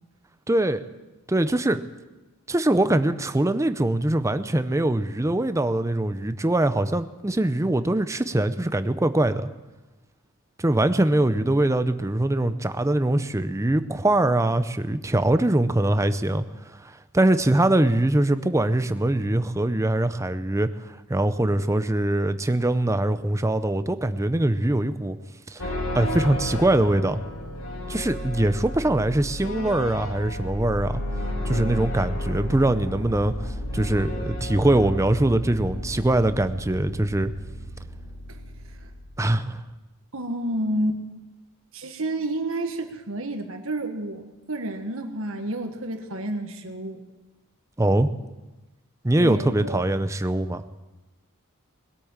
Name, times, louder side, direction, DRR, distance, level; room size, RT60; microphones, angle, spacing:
voice 1, 0.5-0.8 1.3-1.8 2.5-9.5 10.6-16.4 16.8-25.2 25.5-25.7 25.9-27.2 27.9-30.9 31.4-37.3 39.2-39.6 47.8-48.1 49.0-50.6, right 1 dB, 15° right, 11 dB, 0.6 m, -22 dB
sound 1, 25.6-39.3, left 1 dB, 80° left, 2.4 m, -32 dB
voice 2, 40.1-41.0 41.7-47.0 49.2-49.8, right 1 dB, 65° right, 5 dB, 1.6 m, -30 dB
20.5 x 8.5 x 7.3 m, 1.1 s
head